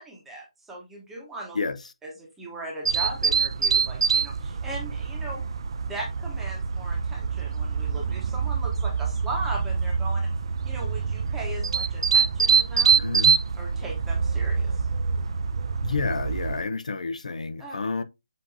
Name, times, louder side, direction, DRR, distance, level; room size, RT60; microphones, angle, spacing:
voice 1, 0.0-1.6 2.0-5.4 5.8-10.3 10.6-13.0 13.6-14.9 17.6-17.8, right 1 dB, 5° right, 0.9 m, -38 dB
sound 1, 2.9-16.6, right 5 dB, 45° right, 0.3 m, -25 dB
voice 2, 13.0-13.4 15.8-18.0, left 4 dB, 75° left, 0.6 m, -29 dB
7.4 x 2.6 x 2.6 m
hypercardioid pair, 165°, 4 cm